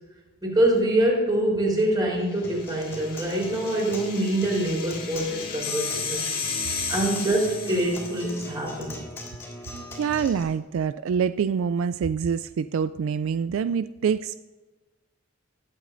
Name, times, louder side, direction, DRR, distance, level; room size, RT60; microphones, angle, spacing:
voice 1, 0.4-6.3 6.9-9.0, right 1 dB, 20° right, -4 dB, 3.8 m, -25 dB
Acoustic guitar, 2.4-10.4, left 1 dB, 10° left, 3.2 m, -41 dB
sound 1, 2.5-8.4, left 5 dB, 50° left, 1.8 m, -34 dB
voice 2, 10.0-14.3, right 6 dB, 65° right, 13 dB, 0.3 m, -25 dB
20.0 x 8.3 x 2.6 m, 1.3 s
head